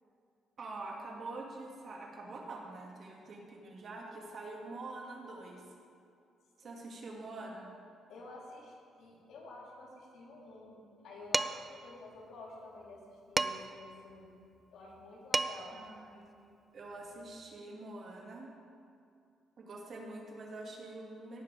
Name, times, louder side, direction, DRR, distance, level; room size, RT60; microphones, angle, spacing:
voice 1, 0.6-5.6 6.6-7.7 15.7-16.4 16.7-18.5 19.6-21.4, right 2 dB, 50° right, 0 dB, 2.1 m, -45 dB
voice 2, 8.1-14.3 14.7-15.8, left 2 dB, 70° left, -4 dB, 3.2 m, -50 dB
Dishes pots and pans, 11.3-11.8 13.4-13.8 15.0-15.1 15.3-15.8, right 3 dB, 20° right, 0.4 m, -32 dB
18.0 x 6.7 x 4.9 m, 2.5 s
cardioid pair, 115°, 0 cm